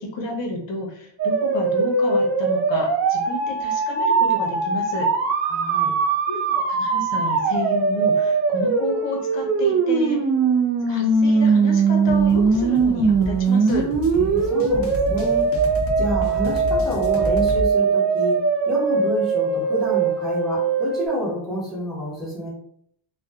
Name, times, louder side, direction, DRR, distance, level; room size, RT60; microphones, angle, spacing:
voice 1, 0.0-5.1 6.3-10.2 10.8-13.9, left 1 dB, 70° left, 0 dB, 0.9 m, -31 dB
sound 1, 1.2-21.1, right 4 dB, 40° right, 0.4 m, -21 dB
voice 2, 5.4-5.9 14.1-15.5 16.0-18.4 18.7-22.5, equal, ahead, -8 dB, 1.2 m, -28 dB
sound 2, 12.1-17.7, equal, 35° left, 0.4 m, -30 dB
2.5 x 2.3 x 2.3 m, 0.66 s
cardioid pair, 160°, 44 cm